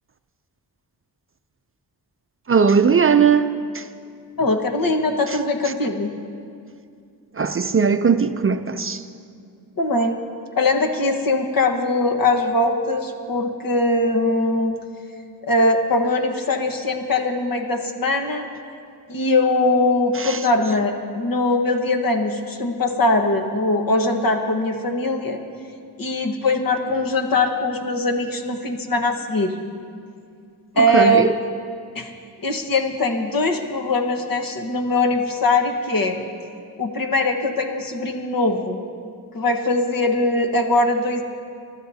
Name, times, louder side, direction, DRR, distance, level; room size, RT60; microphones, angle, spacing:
voice 1, 2.5-3.8 7.4-9.0 20.2-20.4 30.8-31.3, right 6 dB, 35° right, 0.5 m, -18 dB
voice 2, 4.4-6.1 9.8-10.2 10.5-14.8 15.5-18.5 19.1-25.4 26.0-29.5 30.8-31.3 31.9-32.1 32.4-36.2 36.8-38.8 39.3-41.2, left 2 dB, 60° left, 1.4 m, -21 dB
28.0 x 12.5 x 2.8 m
wide cardioid pair, 105°, 38 cm